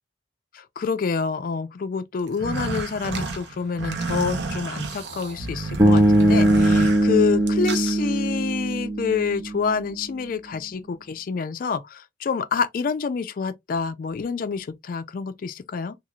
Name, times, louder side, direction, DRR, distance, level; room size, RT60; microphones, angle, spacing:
voice 1, 0.5-16.0, left 5 dB, 50° left, 0.3 m, -27 dB
sound 1, 2.3-7.9, right 3 dB, 75° right, 0.6 m, -30 dB
Bass guitar, 5.8-9.9, right 1 dB, 20° right, 0.6 m, -20 dB
3.1 x 2.3 x 2.3 m
head